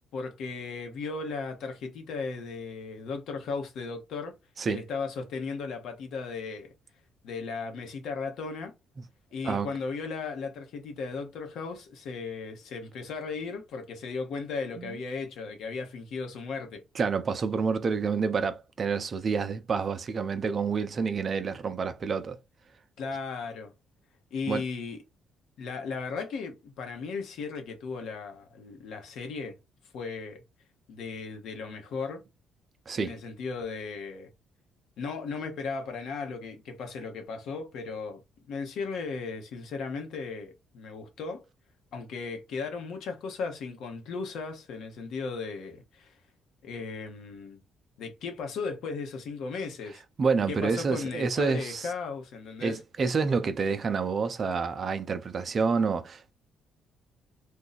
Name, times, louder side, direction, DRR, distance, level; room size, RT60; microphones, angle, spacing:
voice 1, 0.1-4.3 4.7-6.7 7.2-8.7 9.3-16.8 23.0-23.7 24.3-25.0 25.6-29.6 29.9-30.4 30.9-32.2 33.0-34.3 35.0-38.2 38.5-41.5 41.9-46.1 46.6-47.6 48.0-50.0 50.5-52.8, left 4 dB, 75° left, 1.0 m, -36 dB
voice 2, 16.9-22.4 24.5-24.6 32.9-33.1 50.2-51.9 52.6-56.3, right 5 dB, 45° right, 0.5 m, -28 dB
2.7 x 2.3 x 4.0 m
cardioid pair, 90°, 0 cm